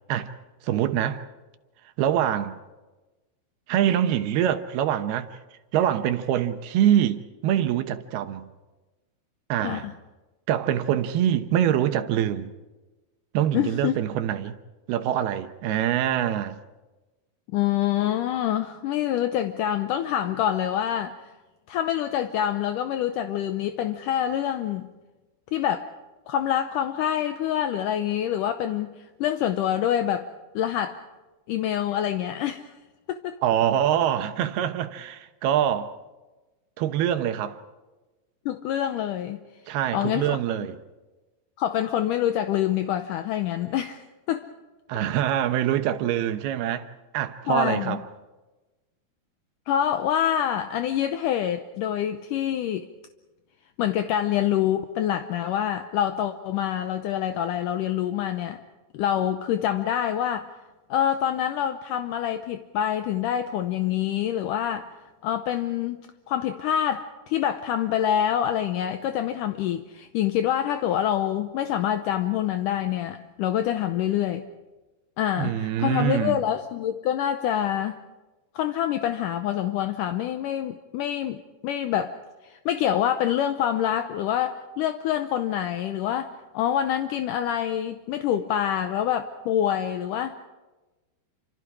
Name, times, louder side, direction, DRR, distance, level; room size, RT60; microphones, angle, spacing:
voice 1, 0.6-1.2 2.0-2.6 3.7-5.3 5.7-8.5 9.5-9.8 10.5-12.5 13.3-14.6 14.9-16.6 33.4-35.9 36.8-37.6 39.7-40.8 44.9-46.9 47.1-48.0 75.4-76.4, right 10 dB, 75° right, 3.0 m, -24 dB
voice 2, 9.6-9.9 13.5-14.0 17.5-21.3 21.7-24.9 25.5-25.9 26.3-30.3 30.6-31.1 31.5-32.7 33.1-33.4 38.5-39.4 39.9-40.7 41.6-44.5 47.5-48.0 49.7-52.9 53.8-58.6 58.9-60.5 60.9-64.9 65.2-74.5 75.2-78.0 78.6-82.2 82.4-90.4, left 10 dB, 75° left, 1.9 m, -26 dB
29.0 x 26.0 x 4.8 m
omnidirectional pair, 4.7 m